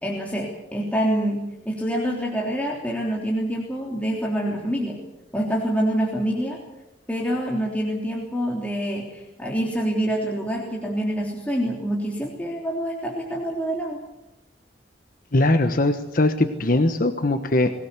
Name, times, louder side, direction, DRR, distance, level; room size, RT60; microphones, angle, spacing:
voice 1, 0.0-5.0 5.3-6.6 7.1-14.0, equal, 10° left, -2 dB, 3.3 m, -26 dB
voice 2, 15.3-17.7, left 2 dB, 50° left, 7 dB, 1.3 m, -20 dB
23.0 x 18.5 x 8.3 m, 0.93 s
head